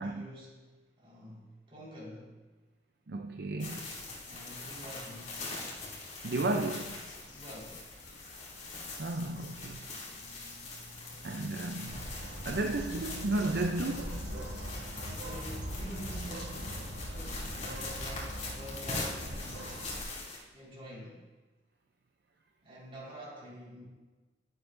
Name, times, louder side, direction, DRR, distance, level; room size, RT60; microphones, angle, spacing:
voice 1, 0.0-2.4 4.2-5.4 7.2-7.8 14.9-19.9 20.5-21.2 22.6-23.9, equal, 30° right, -6 dB, 4.2 m, -47 dB
voice 2, 3.1-3.9 6.2-7.0 9.0-9.8 11.2-12.1 12.4-14.4, right 2 dB, 65° right, 4 dB, 0.6 m, -33 dB
sound 1, 3.6-20.4, left 3 dB, 45° left, 2.8 m, -43 dB
Bird vocalization bird call bird song, 7.0-12.0, left 1 dB, 70° left, 1.3 m, -55 dB
Bird, 11.9-20.0, equal, 80° right, 2.5 m, -41 dB
21.0 x 8.2 x 2.6 m, 1.3 s
head